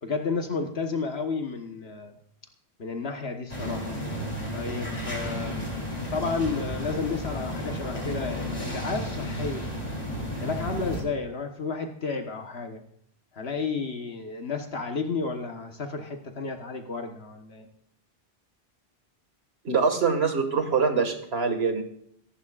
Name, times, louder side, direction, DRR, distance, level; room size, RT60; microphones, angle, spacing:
voice 1, 0.0-2.1 2.8-4.0 4.5-5.7 6.1-9.7 10.4-12.8 13.3-17.7, left 4 dB, 75° left, 4 dB, 1.5 m, -32 dB
sound 1, 3.5-11.0, equal, 40° left, 3.7 m, -33 dB
voice 2, 19.6-21.8, right 5 dB, 75° right, 6 dB, 2.1 m, -24 dB
23.0 x 11.5 x 2.5 m, 0.68 s
omnidirectional pair, 1.1 m